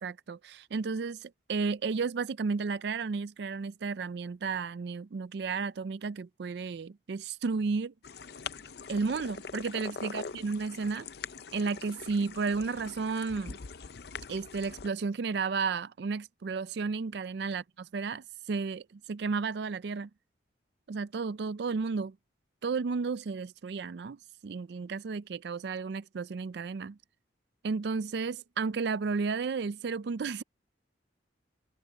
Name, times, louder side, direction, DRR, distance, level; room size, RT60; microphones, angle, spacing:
voice 1, 0.0-7.9 8.9-11.1 11.5-13.6 14.3-17.6 17.9-20.1 20.9-22.1 22.6-24.2 24.4-27.0 27.6-30.4, right 4 dB, 60° right, 0.4 m, -33 dB
sound 1, 8.0-14.9, left 5 dB, 55° left, 0.6 m, -43 dB
head